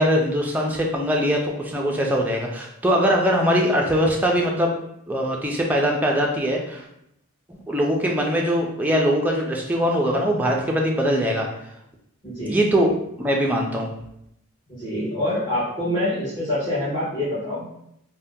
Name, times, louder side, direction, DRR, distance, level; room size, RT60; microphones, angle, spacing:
voice 1, 0.0-4.8 5.1-6.8 7.5-11.5 12.4-14.0, equal, 5° right, -1 dB, 0.3 m, -22 dB
voice 2, 12.2-12.6 14.7-17.7, left 1 dB, 20° left, -13 dB, 1.1 m, -26 dB
2.7 x 2.2 x 3.5 m, 0.78 s
head